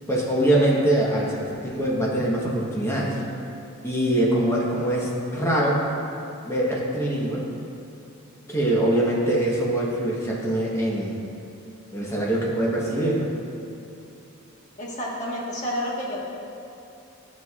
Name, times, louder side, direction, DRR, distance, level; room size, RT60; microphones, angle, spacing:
voice 1, 0.1-3.2 3.8-5.8 6.4-7.5 8.5-11.2 11.9-13.3, right 1 dB, 15° left, -4 dB, 1.1 m, -23 dB
voice 2, 14.8-16.2, equal, 35° left, -5 dB, 1.4 m, -30 dB
12.5 x 6.2 x 2.4 m, 2.8 s
head